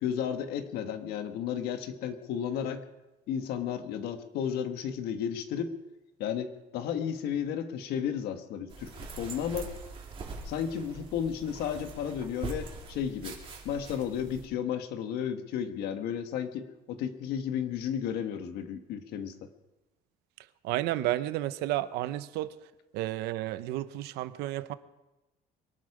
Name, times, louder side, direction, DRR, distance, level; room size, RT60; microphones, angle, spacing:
voice 1, 0.0-2.8 3.3-5.8 6.2-9.7 10.4-13.4 13.6-19.5, left 8 dB, 75° left, 1.5 m, -33 dB
sound 1, 8.7-14.5, right 4 dB, 35° right, 2.9 m, -43 dB
voice 2, 20.6-22.5 22.9-24.7, right 15 dB, 85° right, 0.8 m, -31 dB
23.0 x 12.0 x 4.9 m
cardioid pair, 150°, 17 cm